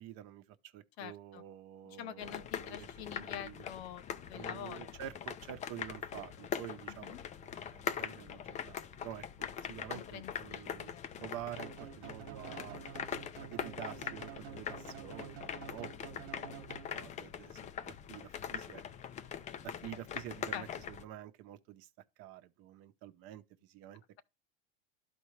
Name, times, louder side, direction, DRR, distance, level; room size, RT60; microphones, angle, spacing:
voice 1, 0.0-3.6 4.3-12.9 13.4-16.4 16.9-18.8 19.6-21.9 22.2-24.0, right 12 dB, 50° right, 0.8 m, -49 dB
voice 2, 1.0-1.4 1.9-4.9 6.9-7.2 9.6-11.1 20.5-20.6, left 11 dB, 80° left, 0.8 m, -47 dB
sound 1, 2.2-21.0, left 8 dB, 25° left, 0.4 m, -42 dB
sound 2, 11.5-17.3, right 9 dB, 85° right, 0.8 m, -49 dB
12.0 x 4.3 x 3.2 m
supercardioid pair, 125°, 31 cm